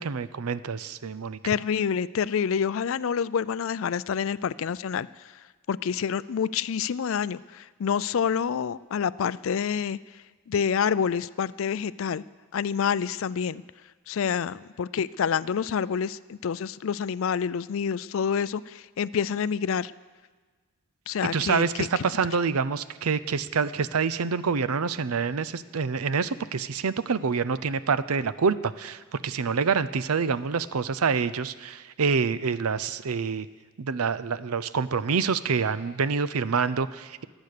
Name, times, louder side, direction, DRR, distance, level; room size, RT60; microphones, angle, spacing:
voice 1, 0.0-1.4 21.3-33.5 33.8-37.2, right 5 dB, 90° right, 16 dB, 0.6 m, -27 dB
voice 2, 1.4-5.1 5.7-10.0 10.5-12.2 12.5-13.6 14.1-19.9 21.1-21.7 22.0-22.1, left 7 dB, 65° left, 18 dB, 0.4 m, -27 dB
23.0 x 8.1 x 6.7 m, 1.4 s
head